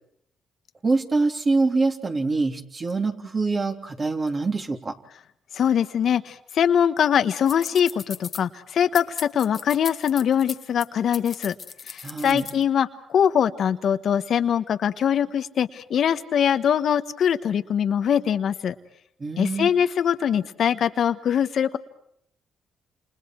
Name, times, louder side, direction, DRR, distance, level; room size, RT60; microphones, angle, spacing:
voice 1, 0.8-4.9 12.0-12.5 19.2-19.7, right 3 dB, 35° right, 4 dB, 3.5 m, -25 dB
voice 2, 5.5-11.5 11.9-18.7 19.4-21.8, left 8 dB, 65° left, 10 dB, 1.3 m, -22 dB
sound 1, 7.5-8.4 8.9-10.9 11.1-12.6, left 6 dB, 45° left, 1.5 m, -37 dB
29.5 x 29.0 x 4.7 m, 0.71 s
cardioid pair, 90°, 0 cm